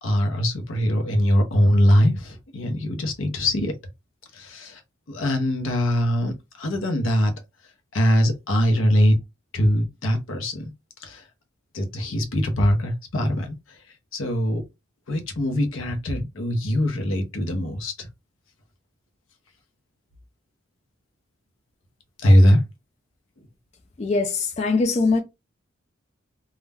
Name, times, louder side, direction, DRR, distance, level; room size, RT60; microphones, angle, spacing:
voice 1, 0.0-3.7 4.3-4.8 5.1-7.3 7.9-9.2 9.5-10.7 11.0-11.3 11.7-13.8 14.1-14.6 15.1-18.1 22.2-22.6, equal, 85° left, 0.7 m, -22 dB
voice 2, 24.0-25.2, left 3 dB, 35° left, 0.4 m, -22 dB
2.3 x 2.1 x 3.4 m
head